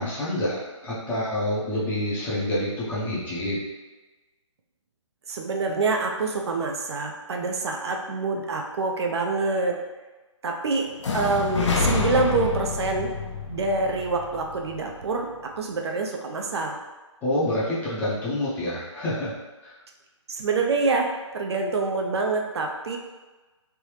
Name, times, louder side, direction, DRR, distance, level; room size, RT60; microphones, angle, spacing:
voice 1, 0.0-3.6 17.2-19.4 19.6-19.7, left 1 dB, 10° left, -8 dB, 0.6 m, -27 dB
voice 2, 5.3-9.8 10.4-10.9 11.1-13.1 13.5-16.8 20.3-21.1 21.3-23.0, right 3 dB, 55° right, 2 dB, 0.5 m, -26 dB
sound 1, 11.0-14.9, left 4 dB, 65° left, 0.6 m, -27 dB
3.3 x 2.6 x 3.1 m, 1.2 s
hypercardioid pair, 150°, 16 cm